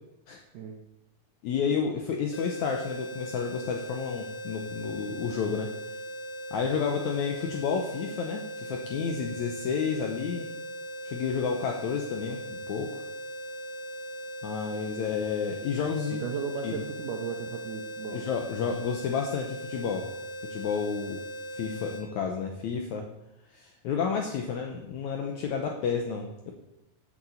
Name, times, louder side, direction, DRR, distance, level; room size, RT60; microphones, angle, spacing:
voice 1, 1.4-5.7 6.5-10.5 11.0-13.0 14.4-16.2 16.6-16.7 18.1-20.1 20.5-21.2 21.5-23.1 23.5-26.5, left 6 dB, 75° left, 3 dB, 1.7 m, -31 dB
sound 1, 2.3-22.0, equal, 45° left, 1.4 m, -39 dB
voice 2, 16.1-18.3, right 6 dB, 75° right, 4 dB, 2.1 m, -35 dB
7.7 x 6.9 x 7.0 m, 0.91 s
omnidirectional pair, 4.2 m